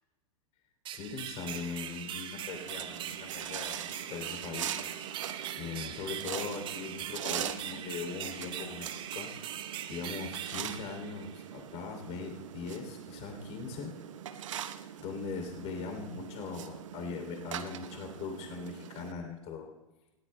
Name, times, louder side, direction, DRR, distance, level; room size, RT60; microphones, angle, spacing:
sound 1, 0.8-11.6, right 10 dB, 25° right, 1.0 m, -41 dB
voice 1, 0.9-4.8 5.6-9.3 9.9-13.9 15.0-19.7, left 5 dB, 35° left, 3 dB, 3.0 m, -40 dB
sound 2, 2.5-19.1, right 10 dB, 60° right, 0.9 m, -42 dB
20.0 x 17.5 x 2.2 m, 1.1 s
figure-of-eight pair, 100°, 18 cm